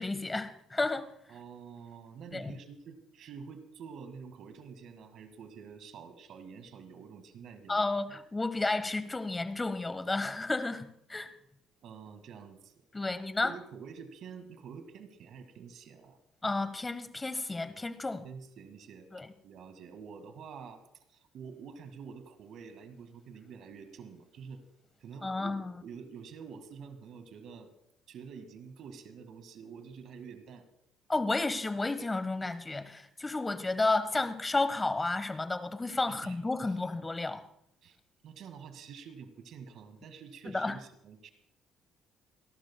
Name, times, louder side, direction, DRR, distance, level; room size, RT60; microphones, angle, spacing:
voice 1, 0.0-1.1 2.3-2.5 7.7-11.3 12.9-13.5 16.4-18.2 19.1-19.3 25.2-25.8 31.1-37.5 40.4-40.8, left 2 dB, 20° left, 1.3 m, -32 dB
voice 2, 1.3-7.9 11.8-16.2 18.2-19.1 19.4-20.8 21.1-24.6 25.0-27.7 28.1-30.7 36.1-36.4 36.6-36.8 37.8-38.0 38.2-41.3, right 6 dB, 65° right, 1.8 m, -48 dB
27.5 x 12.0 x 2.2 m
supercardioid pair, 70°, 0 cm